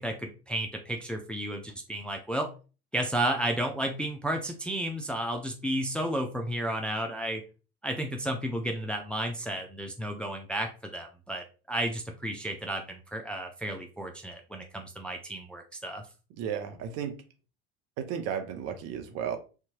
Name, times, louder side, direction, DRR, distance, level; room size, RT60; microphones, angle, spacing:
voice 1, 0.0-2.5 2.9-7.4 7.8-16.0, right 1 dB, 5° left, 3 dB, 0.4 m, -32 dB
voice 2, 16.3-17.1 18.0-19.4, right 8 dB, 50° right, 7 dB, 0.7 m, -34 dB
2.8 x 2.3 x 2.8 m, 0.34 s
hypercardioid pair, 75°, 31 cm